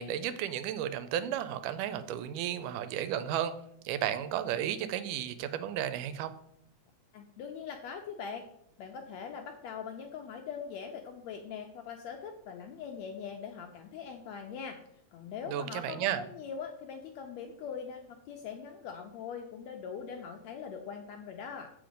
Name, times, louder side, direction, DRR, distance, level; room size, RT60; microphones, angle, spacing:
voice 1, 0.0-3.5 3.9-6.3 15.5-16.2, right 10 dB, 85° right, 11 dB, 2.2 m, -33 dB
voice 2, 7.1-8.5 8.8-14.8 15.1-21.7, left 6 dB, 80° left, 4 dB, 1.6 m, -42 dB
7.7 x 5.1 x 5.1 m, 0.73 s
omnidirectional pair, 3.7 m